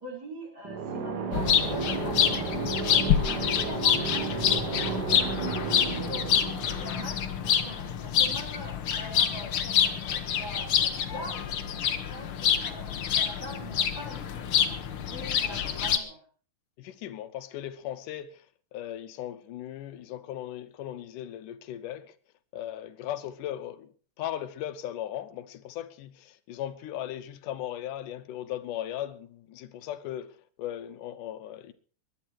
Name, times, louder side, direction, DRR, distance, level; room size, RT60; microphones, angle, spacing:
voice 1, 0.0-2.7 3.3-5.0 5.7-11.5 12.1-16.2, right 1 dB, 30° right, 5.3 m, -43 dB
sound 1, 0.6-8.3, right 5 dB, 60° right, 1.0 m, -33 dB
sound 2, 1.3-16.0, left 8 dB, 60° left, 1.5 m, -27 dB
voice 2, 16.8-18.5 18.7-22.1 22.5-23.9 24.2-31.7, left 11 dB, 80° left, 2.4 m, -37 dB
21.5 x 10.5 x 4.6 m
omnidirectional pair, 3.7 m